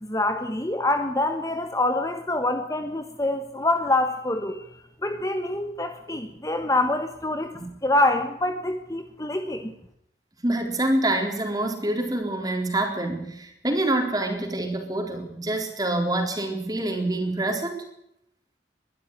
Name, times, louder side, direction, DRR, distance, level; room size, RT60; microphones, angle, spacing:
voice 1, 0.0-7.5 7.8-9.7, left 2 dB, 20° left, 7 dB, 1.2 m, -26 dB
voice 2, 10.4-17.9, right 1 dB, 20° right, 4 dB, 3.9 m, -26 dB
21.5 x 12.5 x 9.9 m, 0.77 s
head